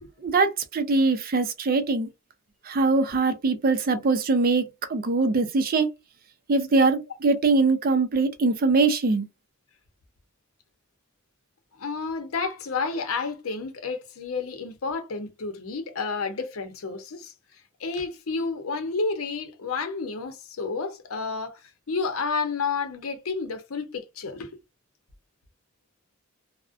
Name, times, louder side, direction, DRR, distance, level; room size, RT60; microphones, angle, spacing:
voice 1, 0.2-2.1 2.7-4.6 4.9-5.9 6.5-9.2, right 3 dB, 45° right, 0.5 m, -22 dB
voice 2, 11.8-17.3 17.8-21.6 21.9-24.6, left 4 dB, 85° left, 0.7 m, -30 dB
2.4 x 2.1 x 2.4 m
head